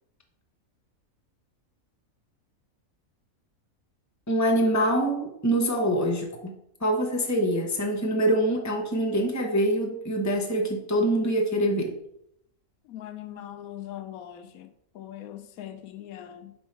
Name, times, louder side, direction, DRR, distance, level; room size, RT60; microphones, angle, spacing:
voice 1, 4.3-11.9, right 1 dB, 15° left, 0.7 m, -25 dB
voice 2, 12.8-14.7 14.9-16.5, left 11 dB, 90° left, 1.1 m, -41 dB
5.4 x 4.5 x 4.6 m
omnidirectional pair, 1.4 m